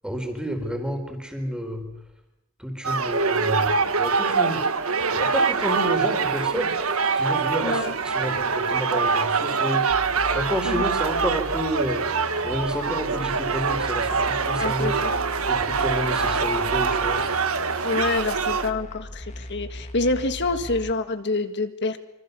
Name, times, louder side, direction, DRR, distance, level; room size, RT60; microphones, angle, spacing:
voice 1, 0.0-1.9 2.6-4.6 5.1-15.0 15.5-17.2, equal, 5° right, 4 dB, 4.3 m, -30 dB
sound 1, 2.8-18.7, right 5 dB, 75° right, 1.5 m, -24 dB
voice 2, 7.6-7.9 10.6-10.8 14.6-15.1 17.8-22.0, left 3 dB, 55° left, 8 dB, 1.8 m, -26 dB
sound 2, 9.9-20.9, left 1 dB, 35° left, 1.8 m, -38 dB
26.0 x 25.0 x 7.0 m, 0.88 s
head